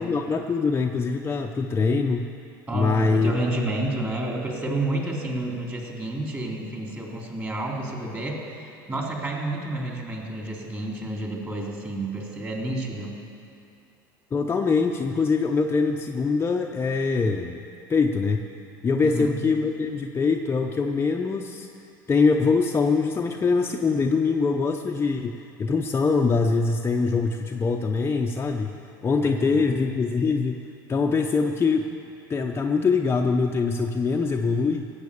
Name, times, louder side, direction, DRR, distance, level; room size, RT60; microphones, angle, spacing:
voice 1, 0.0-2.3 2.7-3.4 14.3-17.6 17.9-18.4 18.8-21.7 22.1-28.7 29.0-30.6 30.9-31.9 32.3-34.9, left 4 dB, 20° left, 2 dB, 0.7 m, -23 dB
voice 2, 2.7-13.2 19.0-19.4 29.2-29.6, right 1 dB, 20° right, -1 dB, 3.3 m, -30 dB
17.0 x 8.0 x 7.0 m, 2.5 s
hypercardioid pair, 85°, 11 cm